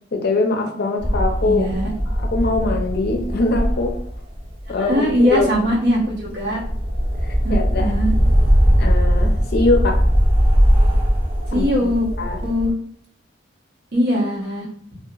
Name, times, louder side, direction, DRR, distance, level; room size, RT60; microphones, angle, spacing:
voice 1, 0.1-1.7 2.3-3.9 4.7-5.5 7.2-7.9 8.8-10.0 11.5-11.9 12.2-12.4, left 3 dB, 55° left, 3 dB, 0.5 m, -22 dB
sound 1, 1.0-12.7, equal, 25° right, 0.5 m, -20 dB
voice 2, 1.4-1.9 4.7-6.6 7.4-8.1 11.5-12.1 12.4-12.7 13.9-14.6, equal, 60° right, -5 dB, 1.0 m, -21 dB
2.8 x 2.3 x 2.3 m, 0.63 s
head